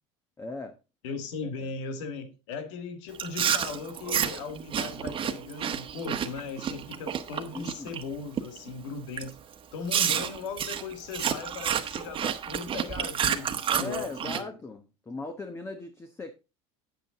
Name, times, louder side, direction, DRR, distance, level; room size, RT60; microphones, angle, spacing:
voice 1, 0.4-0.7 1.6-1.7 7.5-7.9 13.7-16.3, left 3 dB, 15° left, 1.2 m, -38 dB
voice 2, 1.0-9.4 9.7-14.6, left 5 dB, 85° left, 1.9 m, -38 dB
Chewing mastication, 3.1-8.0 8.4-8.7 9.2-9.3 9.9-14.4, right 8 dB, 35° right, 1.3 m, -30 dB
9.2 x 8.8 x 3.8 m
supercardioid pair, 110°, 15 cm